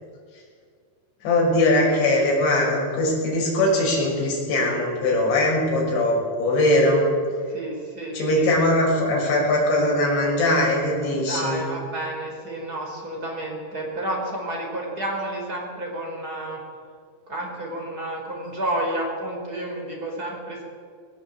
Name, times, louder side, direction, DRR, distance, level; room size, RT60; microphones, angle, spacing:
voice 1, 1.2-7.1 8.1-11.6, left 1 dB, 70° left, -3 dB, 8.1 m, -21 dB
voice 2, 7.5-8.5 11.1-16.6 17.3-20.6, right 1 dB, 20° right, -1 dB, 4.8 m, -30 dB
19.0 x 18.5 x 8.4 m, 2.1 s
omnidirectional pair, 5.4 m